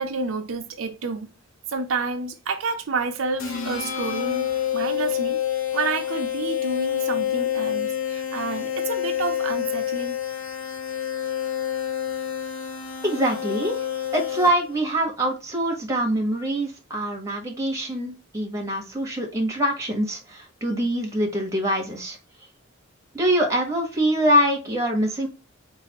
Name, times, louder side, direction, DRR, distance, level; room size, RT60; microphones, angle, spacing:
voice 1, 0.0-1.3 1.7-4.5 4.7-5.4 5.7-10.2, right 4 dB, 80° right, 0.6 m, -29 dB
sound 1, 3.4-14.8, left 10 dB, 80° left, 0.9 m, -28 dB
voice 2, 13.0-13.8 14.1-22.2 23.1-25.3, equal, 15° right, 1.2 m, -24 dB
4.0 x 2.7 x 2.9 m
head